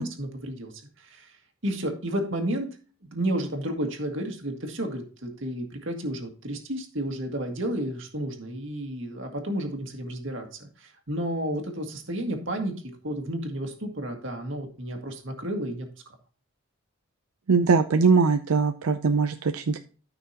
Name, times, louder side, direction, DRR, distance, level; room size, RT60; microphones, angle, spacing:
voice 1, 0.0-1.3 1.6-2.7 3.0-12.7 13.0-15.9, right 1 dB, 60° right, 3 dB, 2.0 m, -32 dB
voice 2, 17.5-19.8, right 4 dB, 85° right, 8 dB, 0.5 m, -21 dB
13.0 x 6.0 x 2.9 m, 0.38 s
head